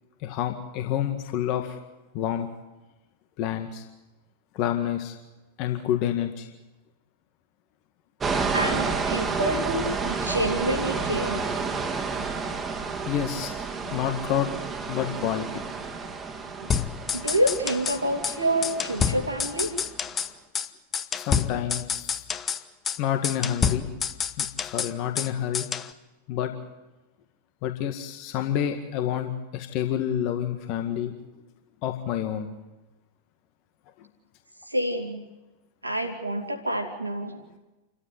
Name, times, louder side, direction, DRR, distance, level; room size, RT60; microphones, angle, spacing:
voice 1, 0.2-1.8 2.1-2.5 3.4-3.9 4.5-5.2 5.6-6.5 13.1-13.5 13.9-14.5 14.9-15.6 21.1-22.3 23.0-23.9 24.4-25.7 26.3-26.5 27.6-31.1 31.8-32.5, left 10 dB, 40° left, 6 dB, 1.9 m, -28 dB
sound 1, 8.2-20.0, right 4 dB, 20° right, 2.1 m, -31 dB
voice 2, 8.5-11.5 16.6-16.7 17.1-19.7 34.7-35.2 35.8-37.4, right 1 dB, 85° right, 2 dB, 2.9 m, -27 dB
sound 2, 16.7-18.0 18.2-18.4 18.6-20.3 20.6-20.7 20.9-22.6 22.9-23.0 23.2-25.3 25.5-25.9, left 7 dB, 20° left, 1.2 m, -28 dB
29.0 x 14.5 x 9.7 m, 1.1 s
figure-of-eight pair, 90°, 0 cm